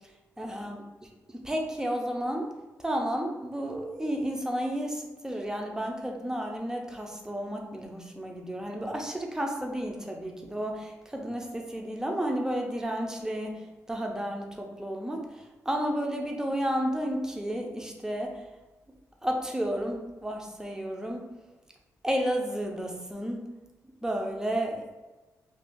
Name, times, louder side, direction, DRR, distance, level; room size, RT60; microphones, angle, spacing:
voice 1, 0.4-0.8 1.3-2.5 2.8-18.4 19.2-21.3 22.0-23.5 24.0-24.9, equal, 10° right, 1 dB, 0.6 m, -32 dB
2.6 x 2.4 x 3.7 m, 1.1 s
cardioid pair, 75°, 6 cm